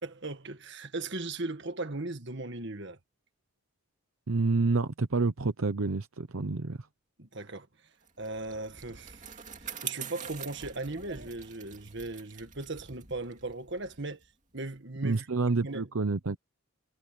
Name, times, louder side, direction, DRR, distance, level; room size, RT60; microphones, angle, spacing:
voice 1, 0.0-3.0 7.2-7.7 8.2-14.2 14.5-15.3 15.6-15.9, right 2 dB, 55° right, 1.8 m, -38 dB
voice 2, 4.3-6.8 15.0-16.4, right 3 dB, 75° right, 0.8 m, -28 dB
Bicycle, 8.1-14.8, right 7 dB, 35° right, 2.5 m, -45 dB
head